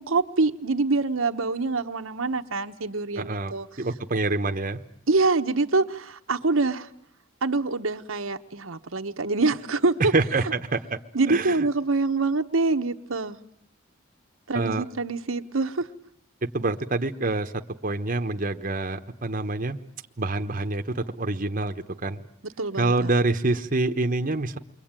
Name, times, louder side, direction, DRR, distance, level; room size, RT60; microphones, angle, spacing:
voice 1, 0.0-3.7 5.1-6.9 7.4-10.1 11.1-13.4 14.5-15.9 22.6-23.1, right 3 dB, 70° right, 6 dB, 1.1 m, -25 dB
voice 2, 3.2-3.5 3.8-4.8 10.1-11.0 11.2-11.7 14.5-14.8 16.4-17.5 17.8-19.8 20.2-22.2 22.8-24.6, right 2 dB, 40° right, 5 dB, 1.1 m, -26 dB
29.0 x 22.5 x 8.9 m, 0.70 s
head